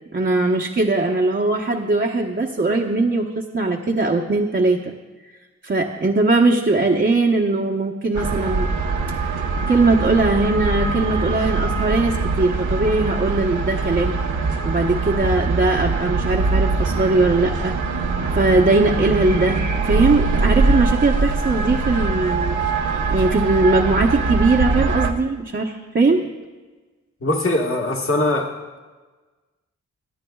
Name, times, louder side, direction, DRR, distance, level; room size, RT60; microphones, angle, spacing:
voice 1, 0.1-4.8 5.6-8.7 9.7-14.2 14.6-17.7 18.3-22.6 23.1-26.3, right 3 dB, 40° right, -1 dB, 1.0 m, -20 dB
sound 1, 8.1-25.1, right 3 dB, 85° right, 1.1 m, -22 dB
voice 2, 27.2-28.5, left 2 dB, 45° left, 0 dB, 1.6 m, -21 dB
25.0 x 9.8 x 2.3 m, 1.3 s
wide cardioid pair, 80°, 29 cm